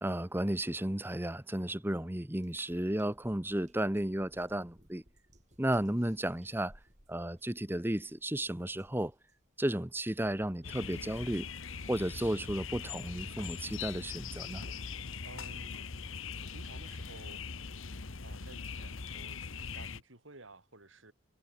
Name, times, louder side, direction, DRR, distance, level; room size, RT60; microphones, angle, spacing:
voice 1, 0.0-5.0 5.6-6.8 7.1-9.1 9.6-11.5 11.9-14.7, right 1 dB, 10° right, 0.9 m, -33 dB
sound 1, 2.4-14.8, right 1 dB, 35° right, 7.6 m, -64 dB
sound 2, 10.6-20.0, left 5 dB, 75° left, 1.3 m, -41 dB
voice 2, 15.2-15.8 16.5-17.5 18.2-21.1, right 2 dB, 70° right, 4.0 m, -54 dB
head